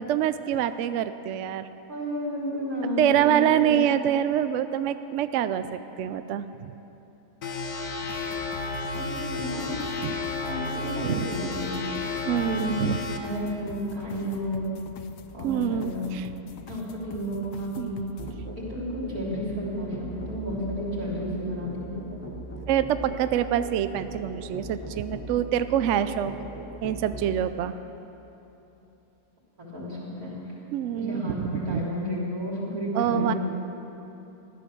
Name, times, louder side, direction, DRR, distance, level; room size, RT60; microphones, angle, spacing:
voice 1, 0.0-1.7 3.0-6.7 10.0-10.2 11.0-11.3 12.3-13.0 15.4-16.3 17.8-17.9 22.7-26.3 26.8-27.7 30.7-31.8 32.9-33.3, right 10 dB, 75° right, 12 dB, 0.6 m, -26 dB
voice 2, 1.9-3.8 8.9-9.7 10.4-11.8 12.5-14.7 15.3-16.1 16.7-18.0 18.7-20.0 20.3-21.9 29.6-30.3 30.9-33.4, equal, 55° right, -6 dB, 4.2 m, -32 dB
sound 1, 7.4-13.2, left 3 dB, 65° left, 1.6 m, -32 dB
sound 2, 8.0-18.3, left 6 dB, 85° left, 1.3 m, -44 dB
Musical instrument, 18.2-27.4, right 1 dB, 10° left, 1.0 m, -39 dB
15.0 x 12.0 x 6.8 m, 3.0 s
omnidirectional pair, 1.8 m